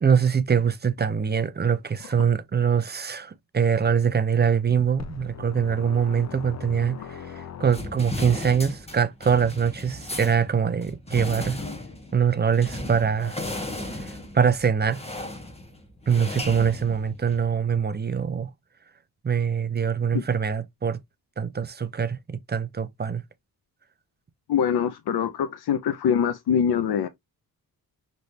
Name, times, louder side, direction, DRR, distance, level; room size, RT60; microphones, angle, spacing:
voice 1, 0.0-11.6 12.1-13.4 14.0-15.0 16.1-18.5 19.2-21.0 21.4-23.2, right 7 dB, 25° right, 0.6 m, -23 dB
sound 1, 5.0-8.2, left 7 dB, 45° left, 0.6 m, -40 dB
sound 2, 7.7-17.5, left 1 dB, 15° left, 1.1 m, -36 dB
voice 2, 24.5-27.1, left 8 dB, 85° left, 0.7 m, -24 dB
6.2 x 3.2 x 2.7 m
wide cardioid pair, 130°, 37 cm